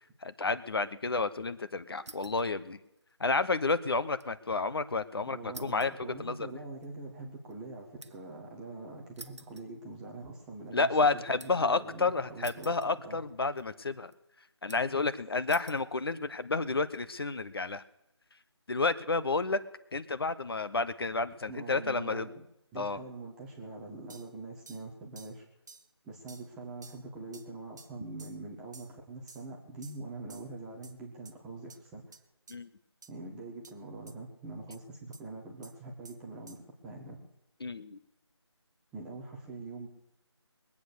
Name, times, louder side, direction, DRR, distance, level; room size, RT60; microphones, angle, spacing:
voice 1, 0.2-2.8 3.2-6.5 10.7-14.1 14.6-17.8 18.7-19.6 19.9-22.3 22.7-23.0 32.5-32.7 37.6-38.0, left 3 dB, 55° left, 13 dB, 0.9 m, -30 dB
sound 1, 2.0-2.5 2.8-4.4 4.7-4.8 5.5-8.4 9.2-10.3 10.7-11.7 12.4-13.3 13.6-14.2 14.7-15.0 15.5-15.9 16.5-17.0, right 3 dB, 75° right, 1.3 m, -52 dB
voice 2, 5.3-13.2 21.5-22.3 22.7-25.4 26.0-32.0 33.1-36.6 36.8-37.2 38.9-39.9, right 3 dB, 5° right, -2 dB, 0.7 m, -44 dB
sound 2, 24.1-24.3 24.7-24.9 25.2-25.4 25.7-25.9 26.3-26.5 26.8-27.0 27.3-27.5 27.8-27.9 28.2-28.4 28.7-28.9 29.3-29.5 29.8-30.0 30.3-30.5 30.8-30.9 31.3-31.4 31.7-31.8 32.1-32.2 32.5-32.6 33.0-33.1 33.6-33.7 34.1-34.2 34.7-34.8 35.1-35.2 35.6-35.7 36.0-36.2 36.5-36.6, right 4 dB, 40° right, 1.0 m, -52 dB
21.0 x 8.4 x 6.5 m, 0.86 s
figure-of-eight pair, 165°, 15 cm